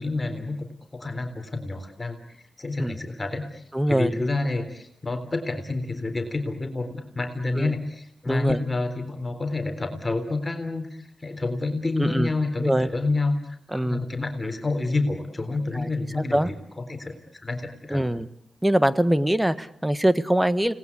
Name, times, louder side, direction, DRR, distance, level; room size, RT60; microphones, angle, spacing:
voice 1, 0.0-18.0, left 2 dB, 25° left, 6 dB, 3.7 m, -29 dB
voice 2, 3.7-4.1 7.6-7.7 8.3-8.6 12.0-12.3 12.6-12.9 13.7-14.1 15.7-15.9 16.2-16.5 17.9-18.3 18.6-20.7, right 1 dB, 10° right, 15 dB, 1.3 m, -23 dB
29.5 x 19.5 x 8.5 m, 0.74 s
cardioid pair, 65°, 0 cm